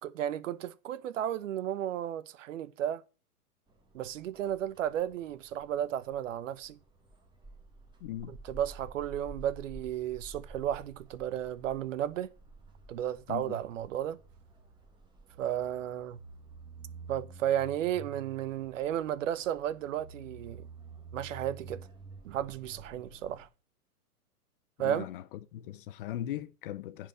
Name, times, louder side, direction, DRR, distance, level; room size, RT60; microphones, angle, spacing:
voice 1, 0.0-3.0 3.9-6.8 8.3-12.3 12.9-14.2 15.4-16.2 17.1-20.6 21.1-21.9 22.2-23.5 24.8-25.0, right 11 dB, 55° right, 1.0 m, -33 dB
sound 1, 3.7-23.5, right 3 dB, 10° right, 1.8 m, -50 dB
voice 2, 8.0-8.4 13.3-13.6 24.8-25.2 25.5-27.1, left 12 dB, 35° left, 0.6 m, -39 dB
10.0 x 4.8 x 7.6 m
hypercardioid pair, 125°, 46 cm